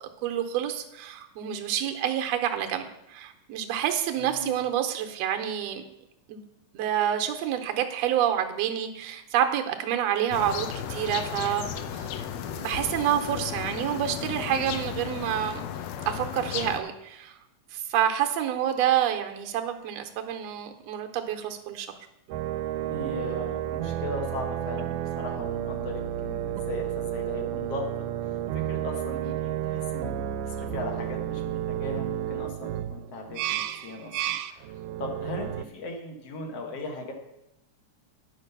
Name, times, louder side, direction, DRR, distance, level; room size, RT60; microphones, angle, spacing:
voice 1, 0.0-5.8 6.3-6.4 6.7-12.3 12.5-15.7 16.1-17.4 17.7-21.9, right 10 dB, 70° right, 6 dB, 1.9 m, -28 dB
voice 2, 4.2-4.6 22.9-27.9 28.5-30.2 30.4-37.1, left 2 dB, 60° left, 3 dB, 2.3 m, -38 dB
sound 1, 10.3-16.8, left 8 dB, 75° left, 1.8 m, -34 dB
sound 2, 22.3-35.7, right 11 dB, 85° right, 2.0 m, -31 dB
9.8 x 5.5 x 6.7 m, 0.86 s
omnidirectional pair, 3.5 m